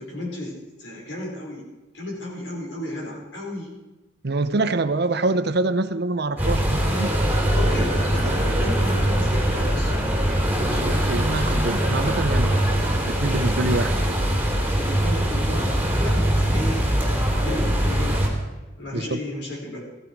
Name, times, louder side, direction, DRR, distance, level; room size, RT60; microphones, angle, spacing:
voice 1, 0.0-1.6 1.9-3.7 6.9-7.2 7.5-9.9 15.0-16.9 17.4-18.2 18.8-19.8, left 1 dB, 70° left, -1 dB, 4.7 m, -33 dB
voice 2, 4.2-7.1 10.6-12.8 13.1-14.1 18.9-19.2, right 2 dB, 60° right, 12 dB, 0.8 m, -25 dB
sound 1, 6.4-18.3, right 1 dB, 10° right, 3.0 m, -22 dB
15.0 x 15.0 x 4.6 m, 1.1 s
head